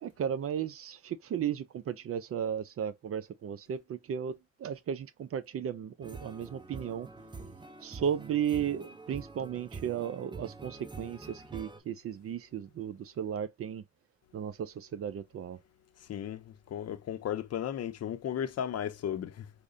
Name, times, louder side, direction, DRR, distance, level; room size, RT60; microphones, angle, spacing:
voice 1, 0.0-7.1 7.8-13.8 14.3-15.6, right 8 dB, 50° right, 0.5 m, -35 dB
sound 1, 6.0-11.8, right 3 dB, 15° right, 0.8 m, -46 dB
voice 2, 16.1-19.5, left 9 dB, 55° left, 0.6 m, -35 dB
4.8 x 2.2 x 2.6 m
cardioid pair, 90°, 30 cm